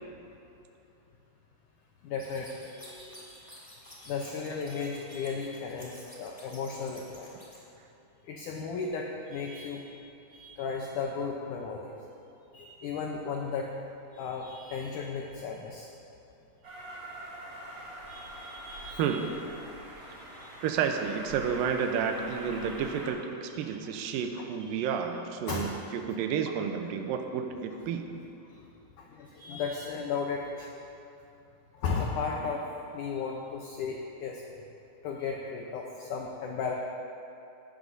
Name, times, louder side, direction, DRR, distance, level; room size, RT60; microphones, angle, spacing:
voice 1, 2.0-3.4 4.0-7.3 8.2-9.9 10.3-11.9 12.5-13.7 14.1-15.9 18.1-19.3 20.0-20.6 23.5-23.8 24.6-25.0 25.5-25.7 28.5-28.6 29.0-30.8 31.7-32.6 32.9-34.4 35.0-36.7, left 5 dB, 85° left, 0 dB, 1.8 m, -35 dB
sound 1, 2.2-7.6, equal, 10° left, 2.2 m, -51 dB
Train, 16.6-23.1, right 1 dB, 30° right, 3.4 m, -44 dB
voice 2, 19.0-19.4 20.6-28.1, right 7 dB, 75° right, 5 dB, 2.2 m, -31 dB
17.5 x 13.5 x 2.7 m, 2.7 s
omnidirectional pair, 4.6 m